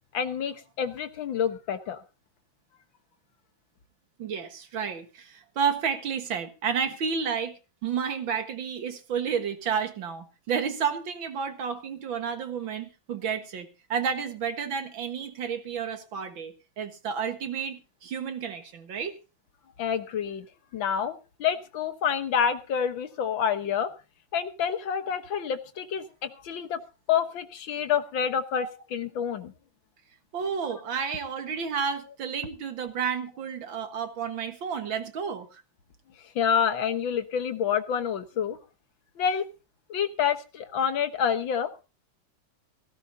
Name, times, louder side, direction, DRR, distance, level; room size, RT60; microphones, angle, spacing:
voice 1, 0.1-2.0 19.8-20.5 20.7-23.9 24.3-26.8 27.1-29.5 36.4-38.6 39.2-39.4 39.9-41.8, left 8 dB, 80° left, 1.9 m, -28 dB
voice 2, 4.2-19.2 28.6-28.7 30.3-35.6, right 7 dB, 75° right, 2.3 m, -31 dB
17.0 x 16.5 x 2.7 m
omnidirectional pair, 2.1 m